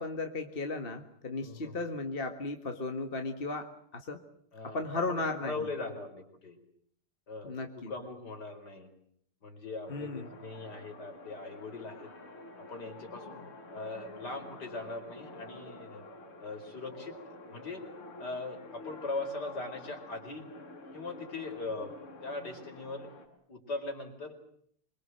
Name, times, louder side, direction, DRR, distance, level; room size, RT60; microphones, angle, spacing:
voice 1, 0.0-4.2 4.6-5.7 7.4-7.9 9.9-10.3, left 3 dB, 30° left, 5 dB, 1.7 m, -35 dB
voice 2, 1.4-1.8 4.5-6.6 7.3-8.9 9.4-12.1 12.6-13.4 13.7-16.0 16.4-17.8 18.2-20.5 20.9-23.1 23.5-24.5, left 3 dB, 50° left, 3 dB, 5.3 m, -40 dB
sound 1, 9.9-23.3, left 2 dB, 80° left, 4.8 m, -49 dB
26.0 x 23.5 x 7.7 m, 0.65 s
omnidirectional pair, 2.4 m